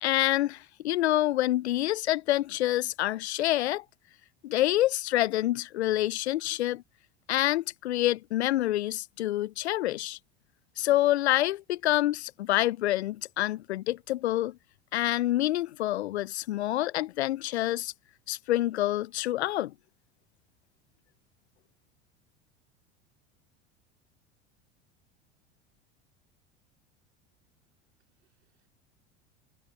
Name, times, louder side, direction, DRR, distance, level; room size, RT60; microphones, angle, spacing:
voice 1, 0.0-3.8 4.4-6.8 7.3-10.2 10.8-14.6 14.9-17.9 18.3-19.7, left 15 dB, 80° left, 0.6 m, -27 dB
voice 2, 27.3-28.7, right 11 dB, 85° right, 4.1 m, -79 dB
hypercardioid pair, 80°, 32 cm